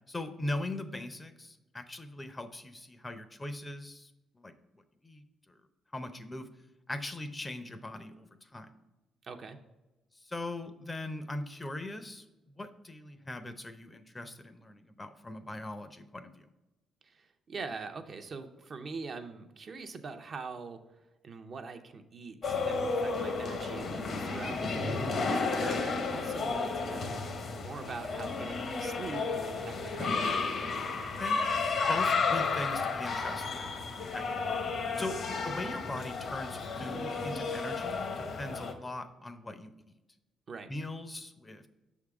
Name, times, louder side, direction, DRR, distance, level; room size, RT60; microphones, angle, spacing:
voice 1, 0.1-4.1 4.3-4.5 5.0-5.5 5.9-6.5 6.9-8.7 10.1-16.5 25.6-25.8 31.2-31.4 31.9-33.7 34.1-34.3 35.0-39.7 40.7-41.7, left 2 dB, 20° left, 9 dB, 0.5 m, -40 dB
voice 2, 9.2-9.6 17.0-20.8 21.2-27.2 27.6-30.3 40.5-40.7, right 4 dB, 50° right, 6 dB, 0.6 m, -43 dB
sound 1, 22.4-38.7, left 4 dB, 55° left, 0.8 m, -32 dB
6.1 x 3.6 x 4.8 m, 1.0 s
cardioid pair, 90°, 0 cm